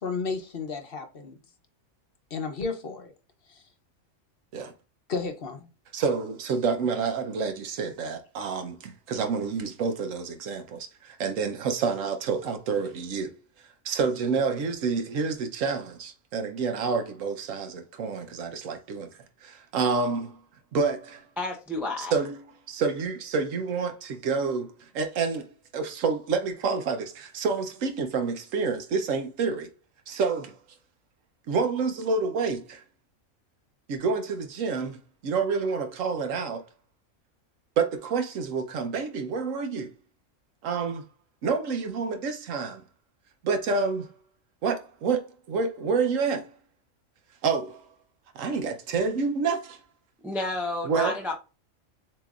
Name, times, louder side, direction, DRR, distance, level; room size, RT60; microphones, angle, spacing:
voice 1, 0.0-1.4 2.3-3.1 3.5-3.6 5.1-5.7, left 4 dB, 50° left, 0.9 m, -32 dB
voice 2, 5.9-13.3 13.8-19.1 19.4-20.4 20.7-21.2 22.0-22.4 22.7-25.5 25.7-29.7 30.1-30.6 31.5-32.8 33.9-36.6 37.8-39.9 40.6-41.0 41.4-42.8 43.4-44.1 44.6-46.5 47.4-47.9 48.3-49.8 50.8-51.2, right 5 dB, 75° right, 1.1 m, -28 dB
voice 3, 21.4-22.1 50.2-51.3, left 2 dB, ahead, 0.5 m, -30 dB
7.3 x 3.0 x 2.4 m
omnidirectional pair, 1.4 m